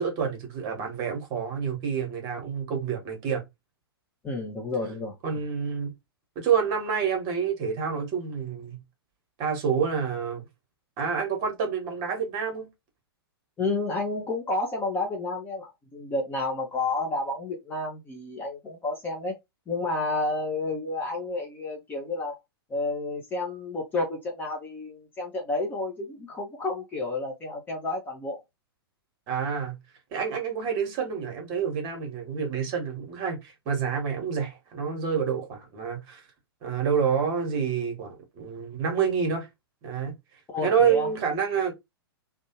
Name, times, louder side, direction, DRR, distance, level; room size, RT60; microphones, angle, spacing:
voice 1, 0.0-3.4 5.2-5.9 6.3-8.8 9.4-10.4 11.0-12.7 29.3-29.7 30.1-36.2 36.6-39.5 39.8-40.1 40.6-41.7, right 6 dB, 30° right, 1.1 m, -28 dB
voice 2, 4.2-5.2 13.6-19.3 19.7-22.4 22.7-28.4 40.5-41.1, left 2 dB, 15° left, 0.6 m, -30 dB
2.6 x 2.1 x 2.9 m
figure-of-eight pair, 105°, 13 cm